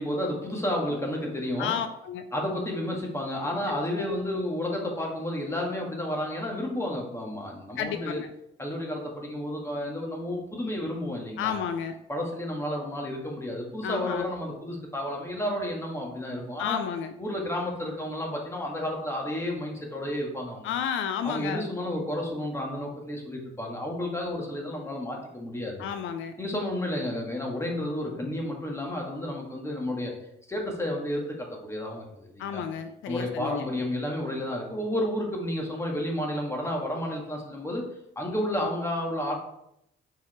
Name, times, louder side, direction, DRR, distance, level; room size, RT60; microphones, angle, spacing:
voice 1, 0.0-1.8 2.3-8.2 8.6-11.5 12.1-16.8 17.2-20.7 21.2-25.9 26.4-30.1 30.5-32.6 33.1-37.9 38.2-39.4, left 1 dB, 15° left, 0 dB, 2.0 m, -31 dB
voice 2, 1.6-2.3 3.7-3.8 7.8-8.3 11.4-11.9 13.8-14.3 16.6-17.1 20.6-21.6 25.8-26.3 32.4-33.6, left 8 dB, 80° left, 9 dB, 0.6 m, -31 dB
5.8 x 4.9 x 4.4 m, 0.78 s
cardioid pair, 90°, 20 cm